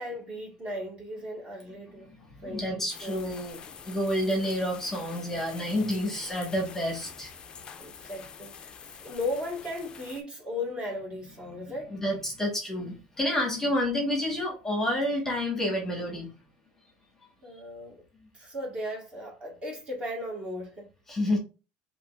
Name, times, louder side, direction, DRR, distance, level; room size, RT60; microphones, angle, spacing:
voice 1, 0.0-2.1 2.4-3.4 7.8-12.0 17.4-18.0 18.3-20.9, left 1 dB, 25° right, 1.4 m, -36 dB
voice 2, 2.1-7.3 11.4-16.5 21.1-21.4, left 1 dB, 10° left, 1.3 m, -29 dB
sound 1, 2.9-10.2, left 6 dB, 25° left, 0.4 m, -46 dB
5.1 x 2.8 x 2.4 m
cardioid pair, 150°, 4 cm